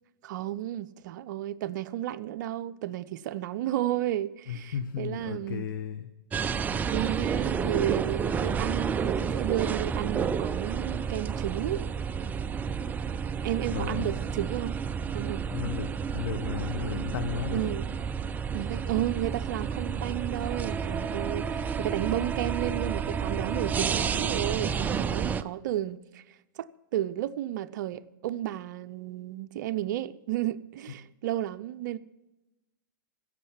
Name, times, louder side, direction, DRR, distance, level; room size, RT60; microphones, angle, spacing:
voice 1, 0.2-5.7 6.9-11.8 13.4-14.8 15.1-15.8 17.5-17.9 18.5-26.2 26.6-26.7 26.9-32.0, right 13 dB, 60° right, 0.6 m, -32 dB
voice 2, 4.5-6.1 13.7-14.1 15.5-17.7, left 7 dB, 75° left, 1.1 m, -34 dB
sound 1, 6.3-25.4, right 6 dB, 15° right, 0.4 m, -30 dB
16.5 x 7.4 x 5.8 m
hypercardioid pair, 125°, 11 cm